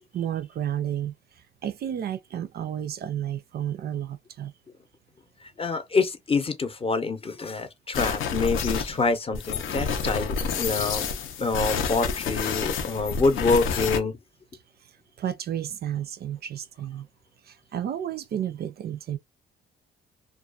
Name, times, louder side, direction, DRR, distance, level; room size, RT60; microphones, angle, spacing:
voice 1, 0.1-4.5 15.2-17.1 17.4-19.2, right 10 dB, 55° right, 0.4 m, -32 dB
voice 2, 5.6-11.1 11.4-14.1, left 4 dB, 30° left, 0.6 m, -26 dB
sound 1, 7.9-9.1 9.3-14.0, left 5 dB, 80° left, 0.6 m, -29 dB
2.3 x 2.3 x 2.4 m
cardioid pair, 90°, 20 cm